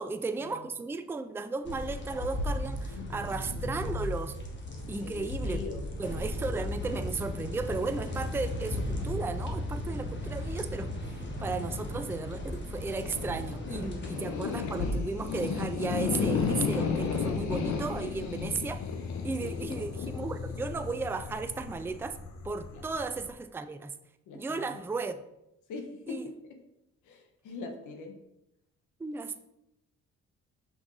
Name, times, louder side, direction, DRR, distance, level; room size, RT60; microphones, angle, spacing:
voice 1, 0.0-4.4 4.9-5.6 6.0-18.8 19.2-22.2 22.4-23.9 24.3-25.2 26.1-26.2 29.0-29.4, right 4 dB, 10° right, 0.4 m, -35 dB
sound 1, 1.6-14.9, left 1 dB, 40° left, 1.5 m, -36 dB
voice 2, 2.8-3.9 4.7-6.2 6.9-7.1 11.5-11.8 13.8-14.4 19.4-19.7 22.7-22.8 24.3-24.7 25.7-26.3 27.0-28.1, left 4 dB, 85° left, 1.2 m, -43 dB
sound 2, 12.9-23.3, left 5 dB, 65° left, 1.0 m, -33 dB
5.8 x 5.4 x 4.0 m
cardioid pair, 90°, 30 cm